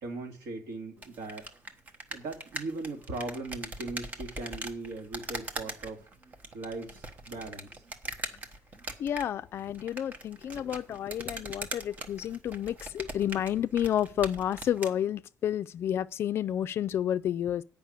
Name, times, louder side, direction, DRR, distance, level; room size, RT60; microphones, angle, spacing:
voice 1, 0.0-1.5 2.1-6.1 6.5-7.8, right 2 dB, 85° right, 2.9 m, -39 dB
sound 1, 1.0-15.0, right 2 dB, 30° right, 1.1 m, -42 dB
voice 2, 9.0-17.6, left 10 dB, 45° left, 0.4 m, -30 dB
9.1 x 5.5 x 8.1 m
cardioid pair, 165°, 6 cm